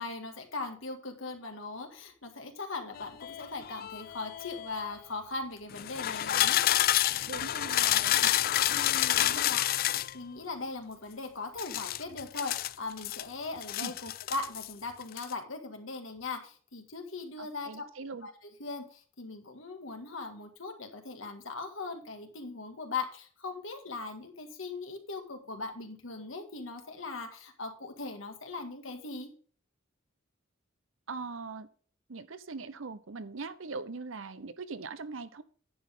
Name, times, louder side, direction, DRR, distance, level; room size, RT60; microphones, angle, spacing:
voice 1, 0.0-6.6 8.7-9.6 10.1-17.9 18.2-29.3, left 3 dB, 90° left, 5 dB, 2.0 m, -39 dB
sound 1, 3.0-4.9 5.7-10.1 11.6-13.2 13.6-14.7 15.0-15.3, left 13 dB, 50° left, 0.3 m, -29 dB
voice 2, 7.2-8.3 8.8-8.9 9.2-9.5 13.8-13.9 17.4-18.3 31.1-31.7 32.1-35.4, right 4 dB, 80° right, 14 dB, 0.8 m, -41 dB
10.5 x 7.6 x 3.7 m, 0.43 s
head